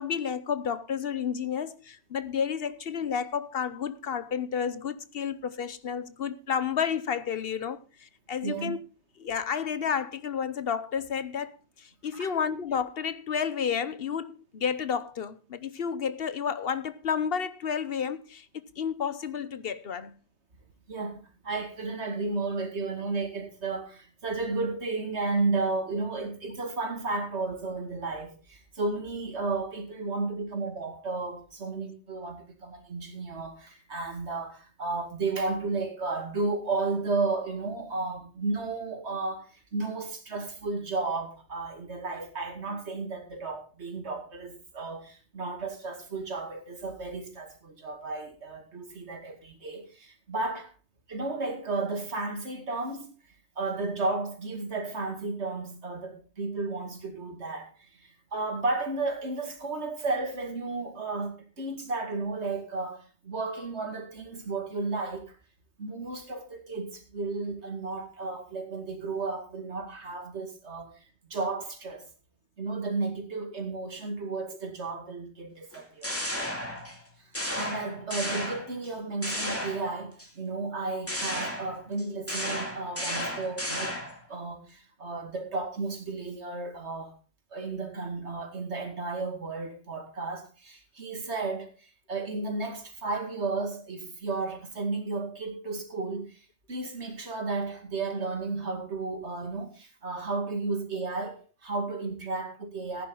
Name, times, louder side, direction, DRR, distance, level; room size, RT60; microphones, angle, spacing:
voice 1, 0.0-8.8 9.2-20.2, left 7 dB, 60° left, 1.0 m, -31 dB
voice 2, 8.4-8.7 12.1-12.3 20.9-50.7 51.1-53.1 53.6-65.4 65.8-70.9 71.2-72.1 72.6-76.1 77.2-84.0 84.3-87.2 87.5-96.4 96.7-103.1, right 3 dB, 80° right, 2.6 m, -33 dB
sound 1, 75.7-77.0 77.3-78.9 79.2-80.3 81.1-84.2, left 1 dB, 10° left, 2.6 m, -33 dB
15.0 x 10.5 x 3.8 m
omnidirectional pair, 1.1 m